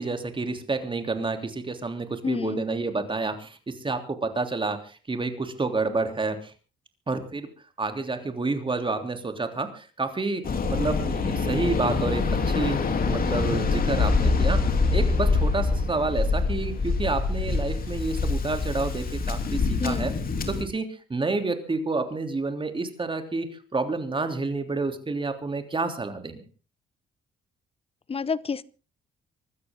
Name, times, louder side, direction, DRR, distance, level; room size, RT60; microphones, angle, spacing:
voice 1, 0.0-6.5 7.1-7.5 7.8-12.8 13.1-20.1 20.5-26.4, right 3 dB, 25° right, 7 dB, 3.3 m, -29 dB
voice 2, 2.2-2.6 19.8-20.0 28.1-28.6, left 5 dB, 30° left, 20 dB, 0.9 m, -29 dB
Waves surf, 10.4-20.6, left 4 dB, 45° left, 3.3 m, -25 dB
24.5 x 13.5 x 3.8 m, 0.35 s
cardioid pair, 90°, 20 cm